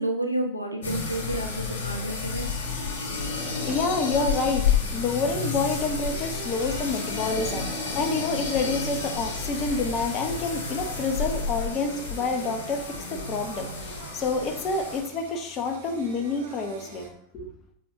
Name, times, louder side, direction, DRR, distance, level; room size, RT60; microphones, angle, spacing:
voice 1, 0.0-2.5, right 1 dB, 90° left, 3 dB, 0.8 m, -30 dB
sound 1, 0.8-15.0, left 5 dB, 55° left, 2.7 m, -31 dB
voice 2, 3.4-17.1 17.3-17.5, left 4 dB, 30° left, 4 dB, 0.9 m, -28 dB
sound 2, 3.7-4.2 5.7-6.6 7.4-7.7 8.0-8.7 9.4-10.2, right 1 dB, 25° right, 1.2 m, -47 dB
Singing, 5.1-17.1, right 5 dB, 60° right, 1.1 m, -46 dB
7.2 x 5.4 x 2.9 m, 0.70 s
figure-of-eight pair, 90°, 0 cm